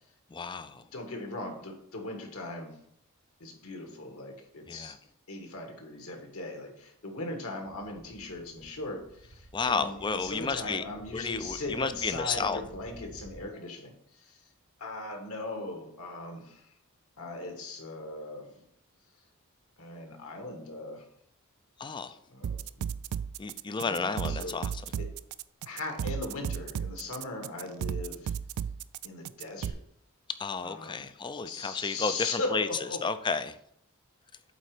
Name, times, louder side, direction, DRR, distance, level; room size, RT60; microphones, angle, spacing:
voice 1, 0.3-0.8 4.7-5.0 9.5-10.8 11.1-12.6 21.8-22.2 23.4-24.7 30.4-32.7 33.0-33.6, left 4 dB, 20° left, 11 dB, 0.4 m, -32 dB
voice 2, 0.9-2.8 3.4-4.9 5.3-14.4 14.8-16.7 17.2-18.6 19.8-21.0 22.3-22.9 23.8-24.6 25.0-25.1 25.6-28.3 29.0-29.8 30.6-31.0 31.4-33.0, left 2 dB, 70° left, 3 dB, 1.7 m, -39 dB
sound 1, 7.6-13.5, right 1 dB, 50° right, 0.8 m, -52 dB
sound 2, 22.4-29.7, right 8 dB, 70° right, 0.3 m, -34 dB
8.6 x 4.0 x 4.9 m, 0.71 s
head